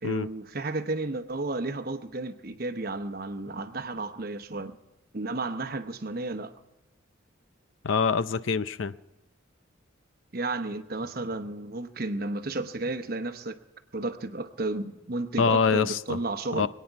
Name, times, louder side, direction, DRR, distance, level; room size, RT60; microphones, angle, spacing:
voice 1, 0.0-4.7 5.1-6.5 10.3-13.6 13.9-16.7, right 2 dB, 50° right, 1.0 m, -32 dB
voice 2, 7.8-8.9 15.4-16.2 16.5-16.7, left 5 dB, 80° left, 0.6 m, -25 dB
25.5 x 9.4 x 4.7 m
head